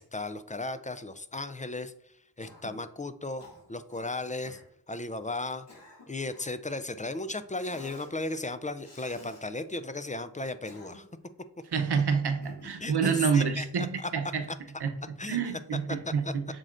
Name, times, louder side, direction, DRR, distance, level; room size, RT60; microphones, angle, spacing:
voice 1, 0.0-1.9 2.4-3.4 3.7-4.6 4.9-5.6 6.1-11.0 12.8-14.1 15.2-15.4 16.1-16.3, left 2 dB, 20° left, 0.3 m, -35 dB
Cough, 2.4-2.8 3.4-4.1 4.4-4.7 5.4-6.6 7.6-8.1 8.8-9.4 10.4-11.2 12.4-12.9, left 2 dB, 75° left, 2.2 m, -51 dB
voice 2, 11.7-14.5 14.8-16.4, right 6 dB, 70° right, 0.9 m, -28 dB
7.4 x 6.5 x 2.5 m
wide cardioid pair, 80°, 41 cm